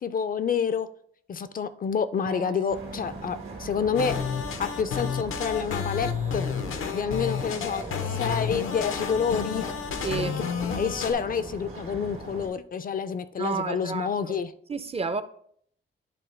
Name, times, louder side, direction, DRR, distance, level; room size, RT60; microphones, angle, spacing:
voice 1, 0.0-0.9 1.3-4.2 4.6-6.5 6.9-9.6 10.7-14.5, left 6 dB, 45° left, 0.4 m, -28 dB
Electric guitar, 2.3-9.4, right 3 dB, 60° right, 1.0 m, -46 dB
sound 1, 2.7-12.5, right 3 dB, 90° right, 1.5 m, -40 dB
sound 2, 4.0-11.1, left 7 dB, 85° left, 0.7 m, -31 dB
voice 2, 10.0-10.4 13.4-14.4 14.7-15.2, right 4 dB, 30° right, 0.4 m, -30 dB
10.0 x 3.5 x 3.2 m
cardioid pair, 95°, 21 cm